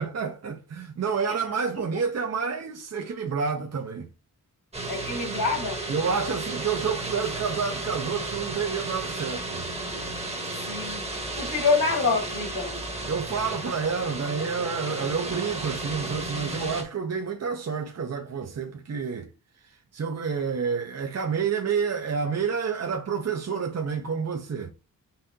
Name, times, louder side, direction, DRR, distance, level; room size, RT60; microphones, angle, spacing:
voice 1, 0.0-4.1 5.9-9.7 13.1-19.3 19.9-24.7, right 6 dB, 50° right, 0.6 m, -29 dB
sound 1, 4.7-16.8, right 2 dB, 20° right, 1.0 m, -33 dB
voice 2, 4.9-5.8 10.7-11.1 11.4-12.8, left 4 dB, 80° left, 2.7 m, -26 dB
5.4 x 3.3 x 2.7 m
wide cardioid pair, 130°, 33 cm